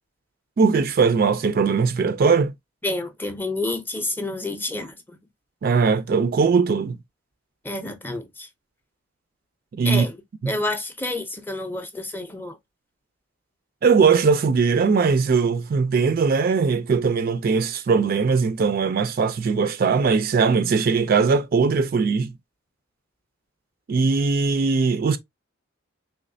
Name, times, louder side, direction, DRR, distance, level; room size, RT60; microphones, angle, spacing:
voice 1, 0.6-2.5 5.6-7.0 9.7-10.1 10.4-10.5 13.8-22.3 23.9-25.2, right 5 dB, 45° right, 0.3 m, -20 dB
voice 2, 2.8-5.2 7.6-8.5 9.8-10.2 10.5-12.6, left 2 dB, 10° left, 0.5 m, -29 dB
3.5 x 3.1 x 2.5 m
head